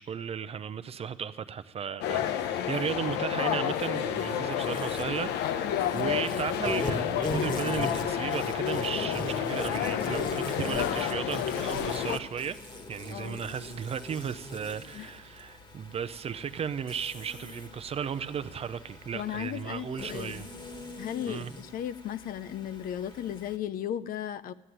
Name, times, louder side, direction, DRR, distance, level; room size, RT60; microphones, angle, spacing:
voice 1, 0.0-12.6 12.9-20.5 21.2-21.5, right 7 dB, 35° right, 0.6 m, -35 dB
sound 1, 2.0-12.2, left 9 dB, 85° left, 0.8 m, -30 dB
Insect, 4.6-23.6, left 2 dB, 25° left, 1.6 m, -41 dB
voice 2, 19.1-20.5 21.0-24.5, left 10 dB, 60° left, 0.5 m, -35 dB
13.5 x 7.7 x 9.9 m
cardioid pair, 110°, 17 cm